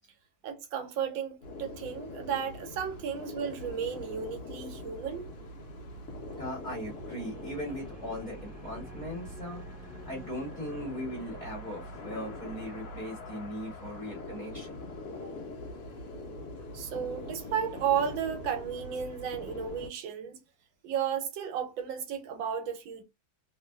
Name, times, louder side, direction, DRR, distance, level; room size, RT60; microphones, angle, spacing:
voice 1, 0.4-5.3 15.2-15.3 16.7-20.4 20.8-23.0, right 8 dB, 85° right, 1.5 m, -33 dB
sound 1, 1.4-19.9, left 1 dB, 60° left, 0.8 m, -43 dB
sound 2, 3.7-18.2, left 2 dB, 10° right, 1.2 m, -53 dB
voice 2, 6.4-9.6 10.0-14.8, equal, 20° left, 1.1 m, -39 dB
3.0 x 2.7 x 2.2 m
omnidirectional pair, 2.1 m